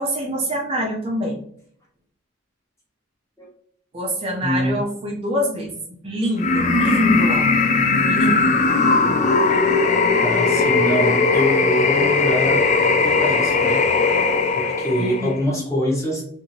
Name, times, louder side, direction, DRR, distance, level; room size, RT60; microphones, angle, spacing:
voice 1, 0.0-1.4 3.9-7.5 8.1-8.6 9.0-9.1 15.0-15.3, equal, 30° right, -1 dB, 0.4 m, -25 dB
voice 2, 4.4-4.8 10.2-13.8 14.5-16.2, equal, 15° left, -4 dB, 0.9 m, -24 dB
sound 1, 6.4-15.4, left 4 dB, 40° left, 0.3 m, -18 dB
2.8 x 2.5 x 2.6 m, 0.65 s
head